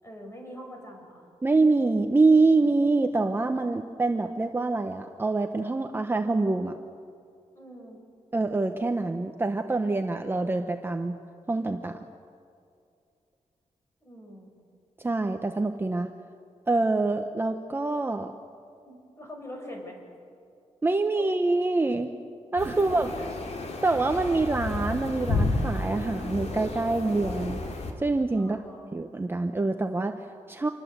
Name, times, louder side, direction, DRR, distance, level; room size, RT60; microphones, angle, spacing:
voice 1, 0.0-1.3 7.5-8.0 14.0-14.5 18.9-20.0 22.9-23.3 28.3-28.9, equal, 20° left, 1 dB, 6.2 m, -43 dB
voice 2, 1.4-6.8 8.3-11.2 11.5-12.0 15.0-16.1 16.7-18.3 20.8-22.1 22.5-23.1 23.8-27.6 28.0-28.6 28.9-30.7, right 3 dB, 20° right, 5 dB, 0.9 m, -25 dB
sound 1, 22.6-27.9, left 2 dB, 65° left, 3.4 m, -31 dB
27.0 x 21.0 x 8.1 m, 2.5 s
wide cardioid pair, 145°, 12 cm